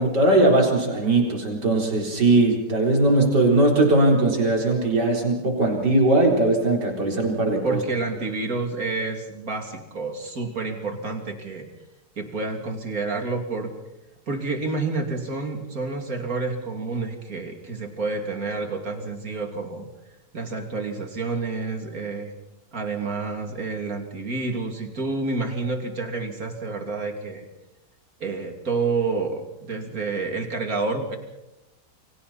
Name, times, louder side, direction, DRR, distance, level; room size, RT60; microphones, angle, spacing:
voice 1, 0.0-7.8, right 2 dB, 75° right, 0 dB, 4.8 m, -20 dB
voice 2, 7.6-11.7 12.2-13.7 14.3-19.9 20.3-22.3 22.7-27.5 28.2-31.2, right 3 dB, 55° right, 4 dB, 3.3 m, -29 dB
30.0 x 24.0 x 4.3 m, 0.89 s
omnidirectional pair, 1.8 m